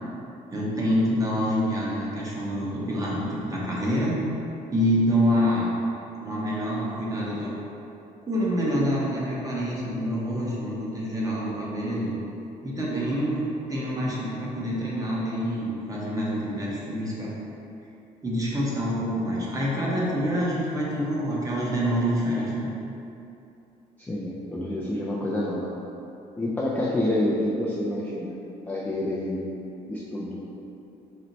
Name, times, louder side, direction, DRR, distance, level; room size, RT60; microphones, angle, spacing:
voice 1, 0.5-4.2 4.7-5.7 6.2-7.5 8.2-12.1 12.6-17.3 18.2-22.7, equal, 20° right, -6 dB, 0.9 m, -26 dB
voice 2, 24.0-25.7 26.4-28.3 28.7-29.4 29.9-30.4, left 1 dB, 10° left, -6 dB, 0.3 m, -28 dB
4.3 x 2.1 x 3.9 m, 2.8 s
cardioid pair, 110°, 17 cm